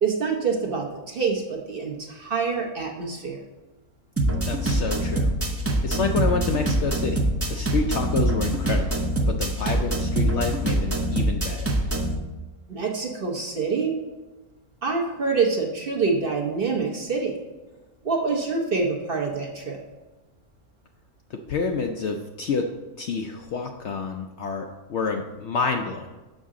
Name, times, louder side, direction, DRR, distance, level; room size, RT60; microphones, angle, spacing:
voice 1, 0.0-3.4 12.7-13.9 14.8-17.3 18.0-19.8, right 4 dB, 45° right, 0 dB, 0.9 m, -26 dB
sound 1, 4.2-12.2, right 1 dB, 20° right, 0.4 m, -24 dB
voice 2, 4.5-5.3 5.8-7.2 7.5-9.0 9.3-11.6 21.5-22.7 23.0-26.1, left 4 dB, 65° left, 3 dB, 0.7 m, -28 dB
6.4 x 6.0 x 3.7 m, 1.2 s
omnidirectional pair, 1.6 m